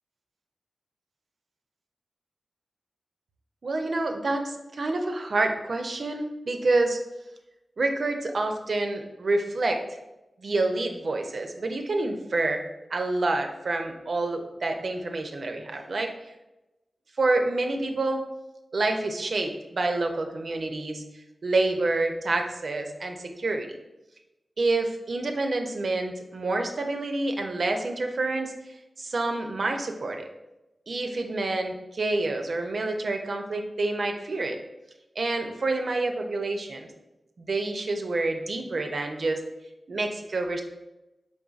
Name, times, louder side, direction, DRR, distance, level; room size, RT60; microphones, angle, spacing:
voice 1, 3.6-7.0 7.8-9.8 10.4-12.6 12.9-16.1 17.2-18.2 18.7-21.0 21.4-23.7 24.6-28.5 29.0-30.3 30.9-34.6 35.2-36.9 37.4-39.4 39.9-40.6, right 2 dB, 70° right, 4 dB, 0.4 m, -28 dB
3.9 x 3.5 x 2.4 m, 0.97 s
cardioid pair, 45°, 0 cm